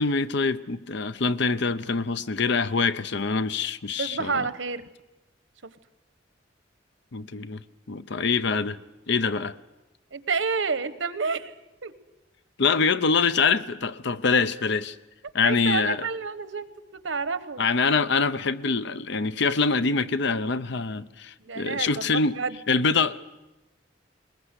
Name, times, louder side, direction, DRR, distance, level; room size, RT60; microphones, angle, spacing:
voice 1, 0.0-4.5 7.1-7.6 7.9-8.8 9.1-9.6 12.6-15.0 15.3-16.0 17.6-22.3 22.7-23.3, left 4 dB, 65° left, 14 dB, 0.7 m, -25 dB
voice 2, 4.0-4.8 5.6-5.7 10.1-11.5 11.8-11.9 15.4-16.7 16.9-17.6 21.4-22.6, right 4 dB, 75° right, 13 dB, 1.1 m, -29 dB
21.5 x 20.5 x 8.1 m, 1.0 s
head